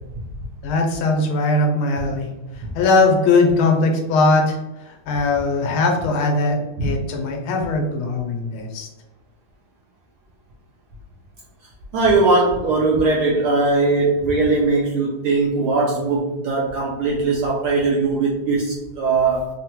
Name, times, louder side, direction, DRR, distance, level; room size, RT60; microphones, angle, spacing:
voice 1, 0.6-2.3 2.7-4.6 4.9-8.9, left 3 dB, 85° left, 2 dB, 1.5 m, -20 dB
voice 2, 11.9-19.5, right 3 dB, 85° right, -2 dB, 0.9 m, -19 dB
3.7 x 2.1 x 2.8 m, 1.0 s
omnidirectional pair, 2.3 m